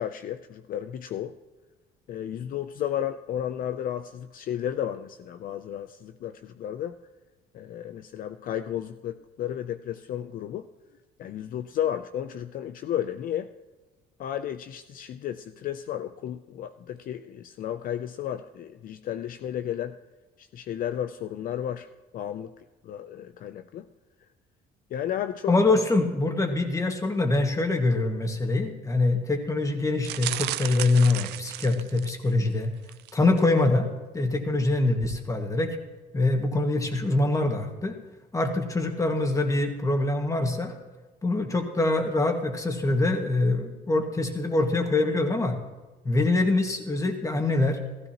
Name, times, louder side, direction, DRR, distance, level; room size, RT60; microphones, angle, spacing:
voice 1, 0.0-1.3 2.1-7.0 7.5-10.7 11.2-13.5 14.2-20.0 20.4-21.9 22.1-22.5 22.8-23.9 24.9-25.5, left 10 dB, 55° left, 9 dB, 0.5 m, -33 dB
voice 2, 25.5-32.7 33.1-33.9 34.1-35.8 36.1-38.0 38.3-40.7 41.2-45.6 46.0-47.8, left 2 dB, 20° left, 4 dB, 1.7 m, -24 dB
sound 1, 30.0-32.3 32.8-33.1 33.4-33.5, right 15 dB, 75° right, 0.5 m, -34 dB
15.5 x 14.5 x 2.9 m, 1.3 s
cardioid pair, 110°, 17 cm